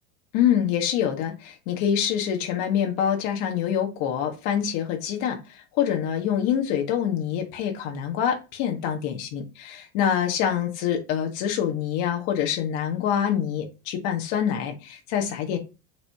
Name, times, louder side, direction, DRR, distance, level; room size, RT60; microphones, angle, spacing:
voice 1, 0.3-15.6, left 9 dB, 50° left, 3 dB, 1.6 m, -25 dB
7.1 x 4.8 x 2.9 m, 0.29 s
supercardioid pair, 165°, 35 cm